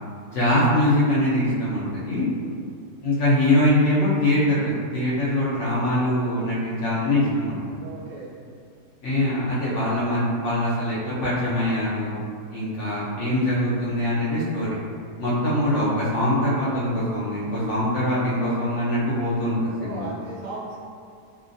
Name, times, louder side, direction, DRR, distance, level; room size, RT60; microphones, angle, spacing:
voice 1, 0.3-2.3 3.0-7.6 9.0-12.2 12.5-14.8 15.2-20.1, left 1 dB, 65° left, -8 dB, 0.8 m, -23 dB
voice 2, 2.4-2.7 7.8-8.3 19.7-20.8, right 2 dB, 65° right, -8 dB, 0.6 m, -37 dB
2.5 x 2.2 x 2.5 m, 2.2 s
omnidirectional pair, 1.7 m